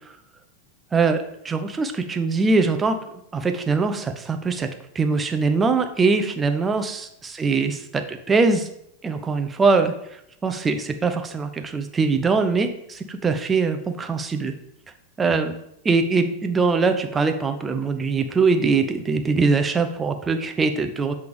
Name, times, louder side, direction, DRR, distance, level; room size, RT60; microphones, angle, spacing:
voice 1, 0.9-3.0 3.3-4.7 4.9-7.1 7.4-8.7 9.0-9.9 10.4-14.5 15.2-15.5 15.8-21.1, right 4 dB, 15° right, 7 dB, 0.6 m, -22 dB
7.7 x 3.4 x 5.0 m, 0.77 s
figure-of-eight pair, 90°, 0 cm